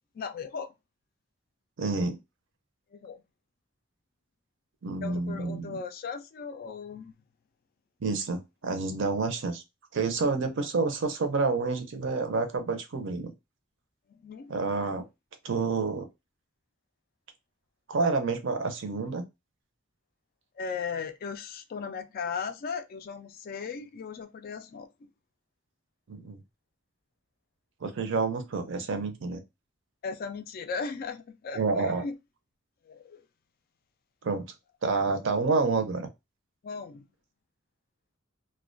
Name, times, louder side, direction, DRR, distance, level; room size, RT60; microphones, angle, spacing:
voice 1, 0.1-0.7 2.9-3.2 5.0-7.1 14.1-14.5 20.6-24.9 30.0-32.2 32.9-33.2 34.9-35.0 36.6-37.1, left 5 dB, 45° left, 0.3 m, -37 dB
voice 2, 1.8-2.2 4.8-5.8 8.0-9.6 9.9-13.3 14.5-15.1 15.4-16.1 17.9-19.2 26.1-26.4 27.8-29.4 31.5-32.0 34.2-34.5 34.8-36.1, right 4 dB, 60° right, 0.5 m, -28 dB
2.3 x 2.2 x 2.4 m
head